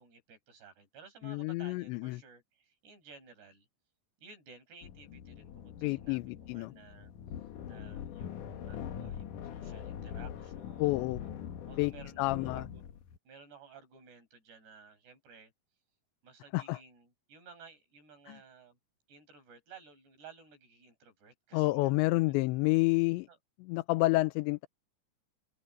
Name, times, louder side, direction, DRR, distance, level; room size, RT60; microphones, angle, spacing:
voice 1, 0.0-3.7 4.2-7.1 7.7-11.1 11.7-12.8 13.3-15.5 16.2-18.8 19.1-22.4 23.3-23.4, right 5 dB, 70° right, 8.1 m, -55 dB
voice 2, 1.2-2.2 5.8-6.7 10.8-11.2 11.8-11.9 12.2-12.6 16.5-16.8 18.3-18.4 21.5-23.3 23.6-24.7, left 21 dB, 90° left, 3.0 m, -29 dB
sound 1, 4.8-13.2, left 9 dB, 60° left, 2.3 m, -43 dB
open air
omnidirectional pair, 5.0 m